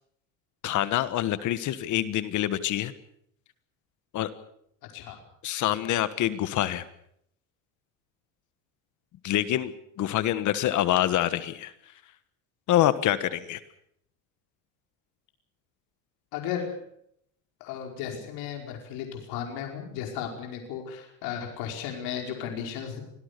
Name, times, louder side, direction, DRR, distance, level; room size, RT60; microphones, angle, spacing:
voice 1, 0.6-2.9 4.1-4.3 5.4-6.8 9.2-9.7 10.0-11.7 12.7-13.6, left 13 dB, 50° left, 13 dB, 1.5 m, -26 dB
voice 2, 16.3-16.8 17.6-23.0, left 8 dB, 70° left, 2 dB, 5.2 m, -35 dB
25.0 x 18.0 x 6.8 m, 0.70 s
cardioid pair, 130°, 38 cm